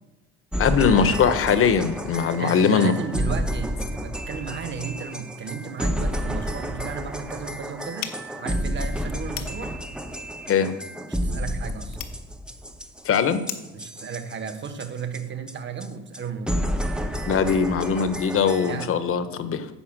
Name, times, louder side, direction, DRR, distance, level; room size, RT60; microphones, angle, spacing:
sound 1, 0.5-15.2 15.5-15.6 15.8-15.9 16.1-16.2 16.5-18.9, equal, 5° right, 0.7 m, -30 dB
voice 1, 0.6-2.9 10.5-10.7 13.0-13.4 17.3-19.7, left 6 dB, 45° left, 11 dB, 1.0 m, -21 dB
voice 2, 2.3-9.7 11.1-12.0 13.7-16.6 18.6-18.9, right 6 dB, 35° right, 8 dB, 1.3 m, -34 dB
sound 2, 8.0-13.8, left 10 dB, 80° left, 1.3 m, -41 dB
9.9 x 5.5 x 7.5 m, 1.1 s
cardioid pair, 110°, 30 cm